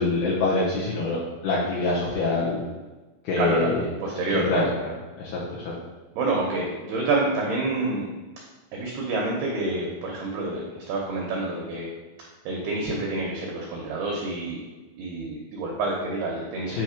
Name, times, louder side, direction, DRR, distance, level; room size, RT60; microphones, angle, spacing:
voice 1, 0.0-2.6 3.2-3.8 4.5-4.7 5.2-5.8 16.7-16.8, left 3 dB, 80° left, -6 dB, 2.3 m, -25 dB
voice 2, 3.4-3.7 4.0-4.6 6.2-8.1 8.7-11.9 12.5-14.6 15.0-16.8, right 2 dB, 80° right, -2 dB, 2.2 m, -28 dB
8.8 x 3.1 x 5.0 m, 1.2 s
omnidirectional pair, 5.7 m